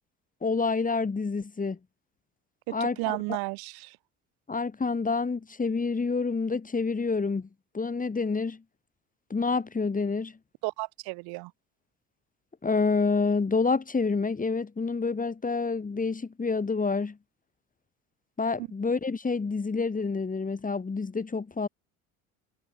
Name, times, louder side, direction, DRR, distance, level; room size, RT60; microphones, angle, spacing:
voice 1, 0.4-1.8 2.7-3.2 4.5-7.5 7.7-8.6 9.3-10.3 12.6-17.2 18.4-21.7, left 4 dB, 20° left, 2.3 m, -28 dB
voice 2, 2.7-4.0 10.6-11.5 18.6-18.7, right 27 dB, 70° right, 3.0 m, -33 dB
hypercardioid pair, 70°, 38 cm